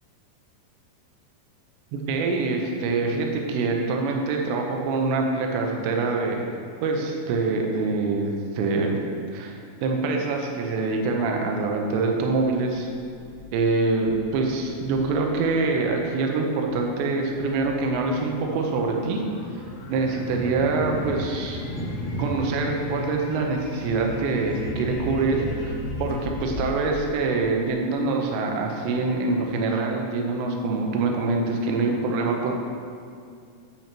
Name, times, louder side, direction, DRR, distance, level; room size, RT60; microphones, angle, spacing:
voice 1, 1.9-6.4 6.8-9.0 9.3-12.9 13.5-19.2 19.9-21.6 22.2-32.5, right 3 dB, 80° right, 1 dB, 2.7 m, -25 dB
sound 1, 12.7-28.0, left 3 dB, 85° left, 2.1 m, -39 dB
sound 2, 19.3-25.7, equal, 45° right, 2.3 m, -35 dB
8.9 x 8.6 x 2.9 m, 2.3 s
omnidirectional pair, 5.9 m